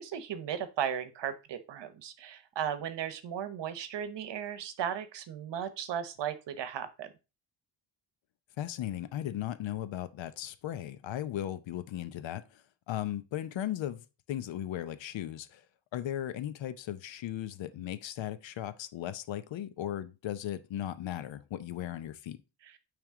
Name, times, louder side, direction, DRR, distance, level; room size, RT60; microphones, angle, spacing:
voice 1, 0.0-7.1, right 9 dB, 65° right, 0.9 m, -36 dB
voice 2, 8.6-15.6 15.9-22.4, left 12 dB, 75° left, 0.8 m, -37 dB
9.0 x 3.5 x 3.6 m
wide cardioid pair, 155°, 45 cm